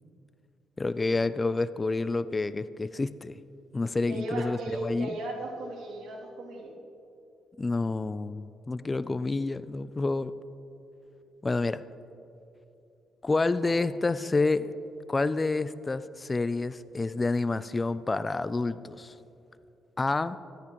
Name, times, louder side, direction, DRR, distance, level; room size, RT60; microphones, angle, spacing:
voice 1, 0.8-3.4 3.7-5.1 7.6-10.3 11.4-11.8 13.2-14.7 15.1-19.2 20.0-20.4, left 3 dB, 25° left, 15 dB, 0.3 m, -28 dB
voice 2, 4.1-6.7 13.6-13.8, right 2 dB, 75° right, -3 dB, 2.6 m, -36 dB
14.0 x 13.0 x 3.0 m, 2.8 s
cardioid pair, 90°, 0 cm